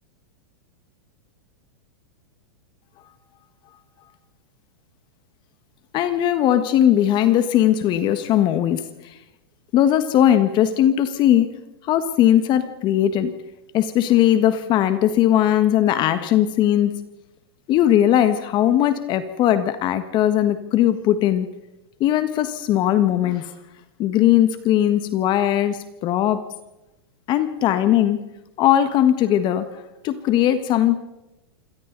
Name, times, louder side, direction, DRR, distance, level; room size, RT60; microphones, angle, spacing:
voice 1, 5.9-9.2 9.7-11.5 11.8-13.3 13.7-17.0 17.7-21.5 22.0-23.5 24.0-26.5 27.3-28.2 28.6-29.7 30.0-31.0, left 11 dB, 35° left, 10 dB, 1.6 m, -19 dB
27.0 x 24.0 x 4.1 m, 0.95 s
hypercardioid pair, 120°, 13 cm